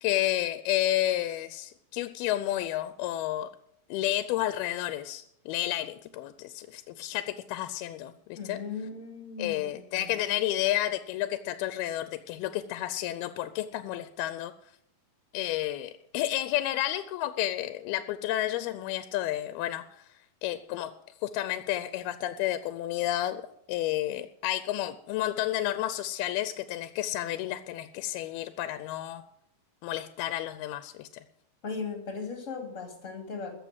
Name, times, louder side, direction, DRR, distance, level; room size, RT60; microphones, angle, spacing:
voice 1, 0.0-3.5 3.9-8.6 9.4-14.5 15.3-19.8 20.4-20.9 21.2-23.4 23.7-29.2 29.8-31.1, left 14 dB, 85° left, 12 dB, 2.6 m, -31 dB
voice 2, 8.4-10.3 31.6-33.5, left 4 dB, 25° left, 4 dB, 2.5 m, -38 dB
14.5 x 7.6 x 9.4 m, 0.75 s
omnidirectional pair, 4.4 m